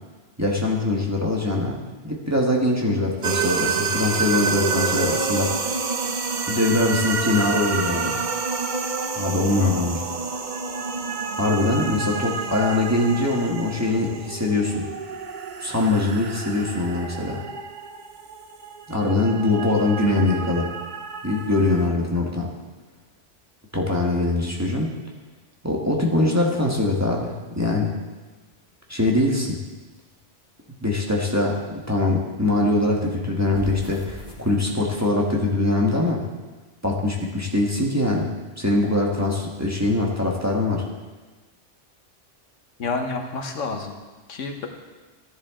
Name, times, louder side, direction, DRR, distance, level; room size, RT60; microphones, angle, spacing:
voice 1, 0.4-1.8 2.0-5.5 6.5-8.2 9.1-10.0 11.3-14.8 15.6-17.4 18.9-20.7 21.2-22.5 23.7-24.9 25.6-28.0 28.9-29.6 30.8-36.2 36.8-40.8, left 2 dB, 15° right, -2 dB, 1.5 m, -22 dB
sound 1, 3.2-21.9, right 5 dB, 45° right, 0.8 m, -29 dB
sound 2, 26.8-29.0 29.3-32.2 32.5-34.9, left 1 dB, 40° left, 1.6 m, -42 dB
voice 2, 42.8-44.0 44.3-44.7, left 4 dB, 90° left, 4 dB, 1.5 m, -29 dB
14.0 x 11.0 x 3.7 m, 1.3 s
omnidirectional pair, 1.2 m